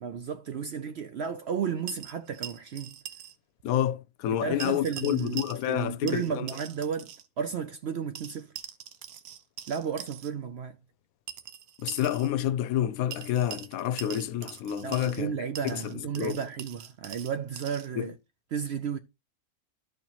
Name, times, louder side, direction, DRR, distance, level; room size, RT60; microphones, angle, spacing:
voice 1, 0.0-3.0 4.4-8.5 9.7-10.8 14.8-18.1 18.5-19.0, right 7 dB, 65° right, 0.6 m, -33 dB
sound 1, 1.9-3.3 3.6-3.7 4.6-5.8 6.1-7.3 8.1-10.3 11.3-12.3 13.1-15.2 15.5-17.9, right 10 dB, 80° right, 1.2 m, -43 dB
voice 2, 3.6-6.5 11.8-15.4 15.7-16.4 17.9-18.1, left 11 dB, 75° left, 1.0 m, -29 dB
13.0 x 4.5 x 2.9 m
omnidirectional pair, 1.5 m